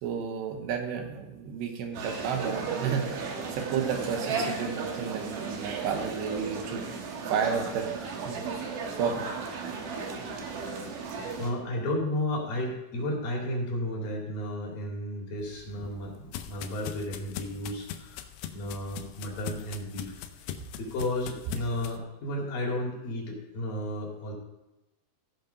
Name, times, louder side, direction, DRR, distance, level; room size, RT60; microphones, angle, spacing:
voice 1, 0.0-6.9 7.3-7.9 8.3-8.4 9.0-9.3, right 6 dB, 85° right, 4 dB, 3.5 m, -32 dB
sound 1, 1.9-11.5, right 5 dB, 65° right, 2.5 m, -35 dB
voice 2, 11.4-18.3 18.5-20.2 20.8-24.3, left 1 dB, 60° left, -2 dB, 4.0 m, -33 dB
sound 2, 15.4-22.0, left 10 dB, 85° left, 2.8 m, -41 dB
15.5 x 5.6 x 5.2 m, 0.96 s
omnidirectional pair, 4.8 m